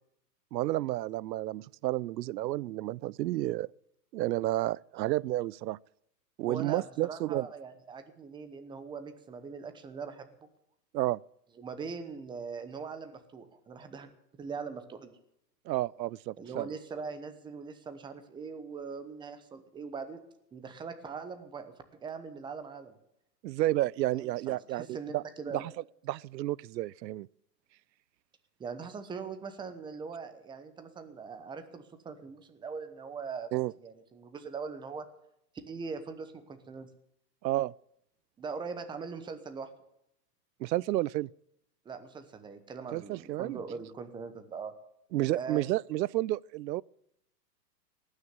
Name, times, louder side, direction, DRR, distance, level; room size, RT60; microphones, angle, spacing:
voice 1, 0.5-3.7 4.1-5.8 6.4-7.5 10.9-11.2 15.7-16.7 23.4-25.2 25.5-25.7 26.1-27.3 33.5-33.7 37.4-37.7 40.6-41.3 42.9-43.6 45.1-46.8, right 16 dB, 80° right, 0.6 m, -31 dB
voice 2, 6.5-10.5 11.6-14.1 14.4-15.1 16.4-20.2 20.5-23.0 24.1-25.6 28.6-33.5 33.8-35.1 35.7-36.9 38.4-39.7 41.8-44.7 45.3-45.6, right 5 dB, 10° right, 0.9 m, -41 dB
18.5 x 6.5 x 9.5 m
hypercardioid pair, 145°, 50 cm